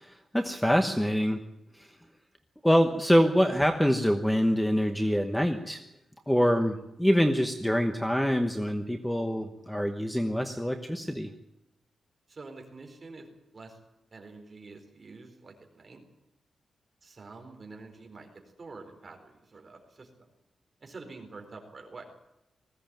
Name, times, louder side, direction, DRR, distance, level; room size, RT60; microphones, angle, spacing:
voice 1, 0.0-1.4 1.8-1.9 2.6-5.8 6.3-11.3, equal, 5° left, 6 dB, 1.1 m, -25 dB
voice 2, 12.3-13.3 13.5-13.8 14.1-16.0 17.0-18.3 18.6-20.3 20.8-22.1, right 3 dB, 30° right, 3 dB, 4.3 m, -47 dB
20.0 x 16.0 x 9.0 m, 0.90 s
wide cardioid pair, 175°, 0 cm